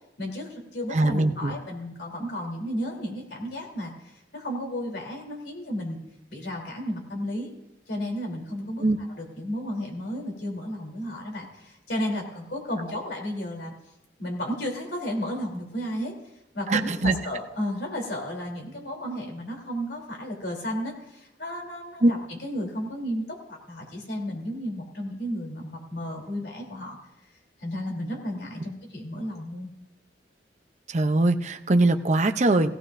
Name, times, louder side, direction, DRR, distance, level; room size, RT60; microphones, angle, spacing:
voice 1, 0.2-6.0 6.3-7.5 7.9-8.8 9.2-13.7 14.2-16.1 16.5-27.0 27.6-29.7, equal, 70° left, 1 dB, 3.3 m, -33 dB
voice 2, 0.9-1.5 8.8-9.0 16.7-17.2 22.0-22.1 30.9-32.7, right 2 dB, 40° right, 7 dB, 0.6 m, -21 dB
17.0 x 16.5 x 2.6 m, 0.89 s
head